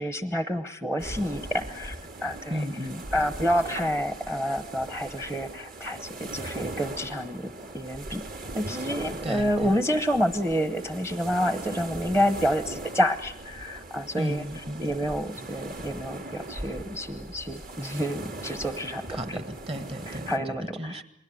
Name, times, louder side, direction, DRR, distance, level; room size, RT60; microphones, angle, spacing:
voice 1, 0.0-2.6 3.1-8.2 8.5-14.4 14.8-19.0 19.8-19.9 20.3-21.0, equal, 10° right, 10 dB, 0.9 m, -28 dB
sound 1, 1.0-20.4, right 2 dB, 50° right, 2.1 m, -40 dB
voice 2, 2.5-3.0 9.2-9.8 14.2-14.9 19.1-21.0, equal, 30° right, 10 dB, 1.6 m, -34 dB
28.5 x 20.5 x 7.7 m, 0.73 s
head